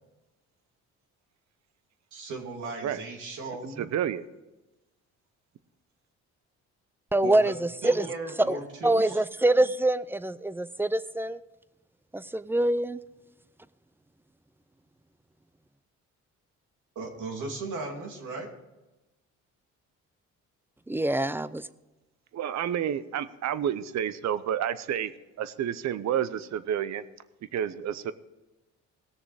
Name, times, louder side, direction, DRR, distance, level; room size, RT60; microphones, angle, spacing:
voice 1, 2.1-3.9 7.2-7.5 7.8-9.2 16.9-18.5, right 3 dB, 80° right, 1 dB, 2.7 m, -37 dB
voice 2, 3.8-4.2 22.3-25.1 25.4-27.0 27.5-28.1, right 9 dB, 65° right, 15 dB, 0.7 m, -29 dB
voice 3, 7.1-8.1 8.5-11.4 12.1-13.0 20.9-21.7, right 1 dB, 5° right, 15 dB, 0.4 m, -25 dB
18.5 x 6.8 x 4.9 m, 1.1 s
cardioid pair, 90°, 30 cm